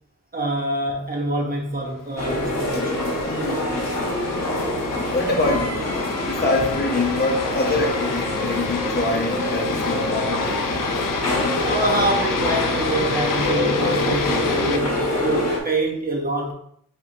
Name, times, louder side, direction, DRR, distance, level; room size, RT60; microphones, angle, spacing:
voice 1, 0.3-3.1 11.6-16.5, right 1 dB, 25° right, -1 dB, 1.1 m, -25 dB
sound 1, 2.2-14.8, left 6 dB, 65° left, 0.5 m, -31 dB
sound 2, 2.2-15.6, left 1 dB, 50° left, 1.0 m, -25 dB
voice 2, 3.2-3.7 5.1-5.8 6.2-10.5, left 2 dB, 25° left, 0 dB, 0.9 m, -25 dB
4.4 x 4.0 x 2.9 m, 0.67 s
wide cardioid pair, 130°, 35 cm